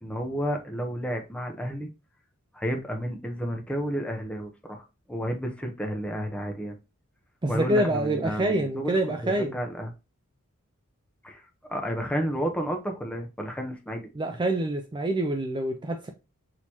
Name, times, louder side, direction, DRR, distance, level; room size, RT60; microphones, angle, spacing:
voice 1, 0.0-1.9 2.5-4.8 5.1-6.8 7.5-9.9 11.2-11.4 11.7-14.1, equal, 5° left, 0.7 m, -31 dB
voice 2, 7.4-9.6 14.1-16.1, right 1 dB, 20° right, 0.4 m, -26 dB
6.3 x 2.8 x 2.9 m
head